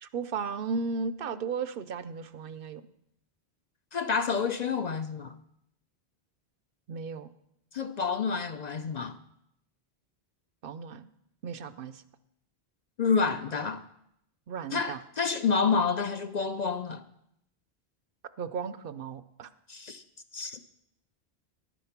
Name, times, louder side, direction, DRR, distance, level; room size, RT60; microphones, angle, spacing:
voice 1, 0.0-2.9 6.9-7.3 10.6-11.1 11.4-12.0 14.5-15.0 18.4-19.5, right 5 dB, 65° right, 0.7 m, -35 dB
voice 2, 3.9-5.3 7.7-9.2 13.0-13.8 14.7-17.0 19.7-20.0 20.3-20.6, left 5 dB, 50° left, 0.6 m, -28 dB
11.5 x 9.2 x 5.8 m
omnidirectional pair, 1.0 m